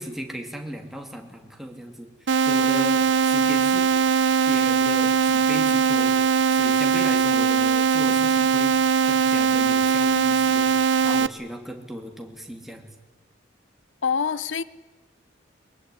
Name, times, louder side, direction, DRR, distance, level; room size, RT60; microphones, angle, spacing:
voice 1, 0.0-2.1 2.4-3.9 4.5-6.1 6.5-8.8 9.1-12.9, equal, ahead, 2.8 m, -36 dB
sound 1, 2.3-11.3, right 6 dB, 70° right, 0.8 m, -20 dB
voice 2, 14.0-14.6, left 6 dB, 80° left, 0.7 m, -25 dB
23.0 x 22.5 x 9.9 m
head